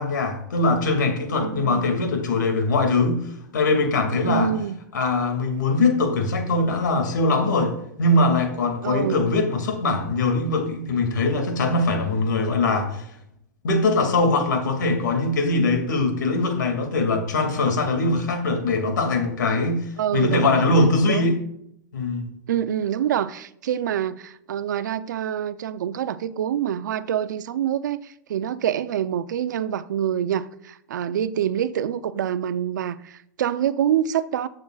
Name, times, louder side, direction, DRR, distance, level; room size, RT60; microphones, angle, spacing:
voice 1, 0.0-4.5 4.9-13.1 13.6-21.4 21.9-22.3, left 2 dB, 85° left, 2.3 m, -22 dB
voice 2, 1.4-1.9 4.2-4.8 8.8-9.2 20.0-20.6 21.0-21.3 22.5-34.5, right 10 dB, 80° right, 0.6 m, -26 dB
18.0 x 7.7 x 2.4 m
hypercardioid pair, 115°, 10 cm